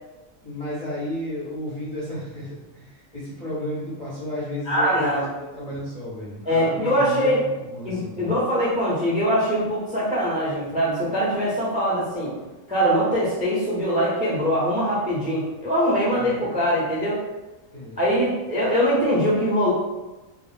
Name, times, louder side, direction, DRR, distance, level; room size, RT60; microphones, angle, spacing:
voice 1, 0.4-8.3 16.1-16.6 17.7-18.0, left 1 dB, 40° left, -9 dB, 0.6 m, -33 dB
voice 2, 4.7-5.2 6.5-7.4 7.8-12.3 12.7-17.2 18.0-19.7, equal, 10° right, -7 dB, 0.4 m, -22 dB
2.3 x 2.1 x 3.2 m, 1.1 s
omnidirectional pair, 1.5 m